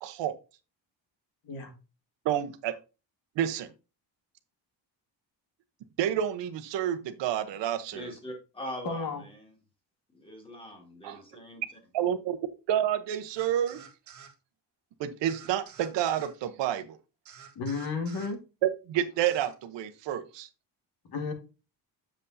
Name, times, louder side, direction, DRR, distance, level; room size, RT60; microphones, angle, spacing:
voice 1, 0.0-0.3 2.2-2.7 3.4-3.7 6.0-8.1 11.0-11.2 11.9-12.4 12.7-13.8 15.0-17.0 18.9-20.5, right 10 dB, 85° right, 9 dB, 1.0 m, -29 dB
voice 2, 7.9-9.5 10.1-11.6, equal, 10° left, 2 dB, 2.2 m, -42 dB
voice 3, 8.8-9.2 17.6-18.4 21.1-21.3, left 4 dB, 55° left, 5 dB, 1.8 m, -32 dB
sound 1, 13.3-14.3 15.3-16.3 17.2-18.3 19.2-19.5, right 7 dB, 40° right, 1.3 m, -50 dB
7.8 x 7.2 x 2.7 m, 0.30 s
cardioid pair, 160°, 42 cm